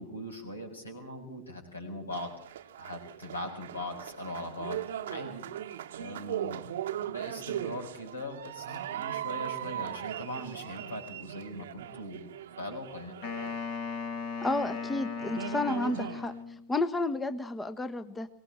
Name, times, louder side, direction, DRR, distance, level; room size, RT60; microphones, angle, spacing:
voice 1, 0.0-5.4 6.0-12.3 12.6-13.1, left 1 dB, 80° left, 3 dB, 6.8 m, -41 dB
sound 1, 2.1-14.1 14.8-14.9 15.2-16.4, right 11 dB, 60° right, 1.1 m, -39 dB
Wind instrument woodwind instrument, 13.2-16.7, left 5 dB, 60° left, 4.8 m, -37 dB
voice 2, 14.4-16.3 16.7-18.3, left 2 dB, 10° left, 11 dB, 1.2 m, -31 dB
24.5 x 19.5 x 7.3 m, 0.65 s
figure-of-eight pair, 90°, 0 cm